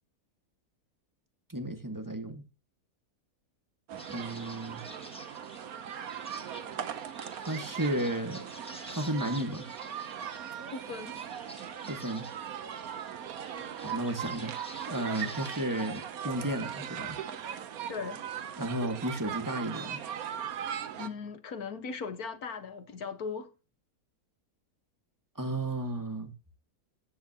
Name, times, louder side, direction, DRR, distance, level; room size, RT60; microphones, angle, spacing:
voice 1, 1.5-2.4 4.1-4.8 7.4-8.5 8.9-9.6 11.9-12.2 13.8-14.5 14.9-17.2 18.6-20.0 25.3-26.3, right 1 dB, 15° right, 1.6 m, -33 dB
sound 1, 3.9-21.1, right 9 dB, 70° right, 1.4 m, -39 dB
sound 2, 4.0-16.1, equal, 5° left, 1.6 m, -50 dB
voice 2, 10.7-11.2 17.9-18.2 20.9-23.5, left 5 dB, 70° left, 1.8 m, -38 dB
14.5 x 9.1 x 2.9 m
omnidirectional pair, 1.6 m